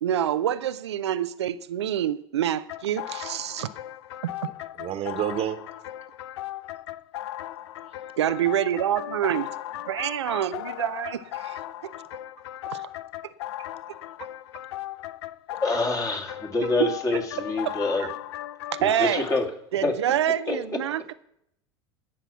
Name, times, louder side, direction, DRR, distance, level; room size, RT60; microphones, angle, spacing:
voice 1, 0.0-3.7 8.2-9.5 9.9-11.6 12.7-12.8 13.2-13.3 16.8-16.9 17.6-17.7 18.7-19.3 19.7-21.1, right 10 dB, 90° right, 0.5 m, -26 dB
sound 1, 2.7-19.4, left 14 dB, 75° left, 0.5 m, -37 dB
voice 2, 4.4-5.6 7.9-8.0, right 11 dB, 45° right, 1.2 m, -30 dB
voice 3, 15.6-18.1 18.8-19.5 19.8-20.0 20.5-20.6, left 3 dB, 25° left, 2.2 m, -26 dB
16.0 x 5.9 x 6.9 m
hypercardioid pair, 90°, 14 cm